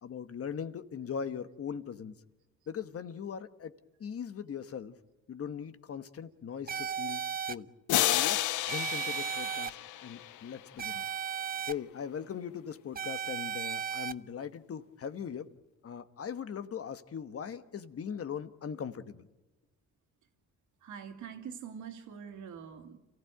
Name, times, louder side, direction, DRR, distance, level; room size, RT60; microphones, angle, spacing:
voice 1, 0.0-2.1 2.7-3.7 4.0-4.9 5.3-7.7 8.1-9.8 10.0-11.0 11.7-15.5 15.8-19.3, left 7 dB, 50° left, 1.3 m, -40 dB
sound 1, 6.7-7.5 8.7-9.7 10.8-11.7 12.9-14.1, right 8 dB, 30° right, 0.7 m, -35 dB
sound 2, 7.9-10.6, left 13 dB, 80° left, 0.8 m, -31 dB
voice 2, 20.8-23.0, right 7 dB, 80° right, 2.7 m, -44 dB
28.5 x 15.5 x 9.2 m
cardioid pair, 90°, 30 cm